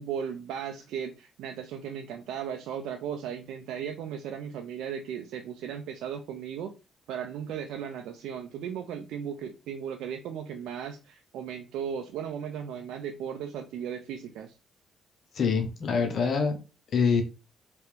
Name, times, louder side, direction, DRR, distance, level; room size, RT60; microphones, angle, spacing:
voice 1, 0.0-6.7 7.1-14.5, right 8 dB, 85° right, 0.4 m, -36 dB
voice 2, 15.3-16.6 16.9-17.2, left 5 dB, 60° left, 0.8 m, -25 dB
3.3 x 3.0 x 3.2 m
cardioid pair, 90°, 0 cm